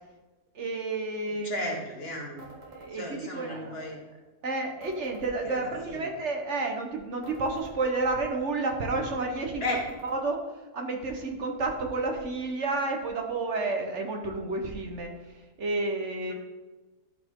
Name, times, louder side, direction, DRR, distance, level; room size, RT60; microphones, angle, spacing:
voice 1, 0.5-1.5 2.6-3.9 4.4-9.6 10.2-10.4 10.7-15.1 15.6-16.3, right 3 dB, 50° right, 3 dB, 1.5 m, -30 dB
voice 2, 1.2-2.5 2.9-4.0 5.4-6.1 9.6-9.8 16.3-16.4, left 2 dB, 40° left, -1 dB, 1.9 m, -35 dB
sound 1, 2.4-2.9 4.8-5.3 7.2-7.8 9.7-10.2, right 2 dB, 85° right, 2.3 m, -48 dB
12.5 x 5.7 x 3.8 m, 1.2 s
omnidirectional pair, 1.6 m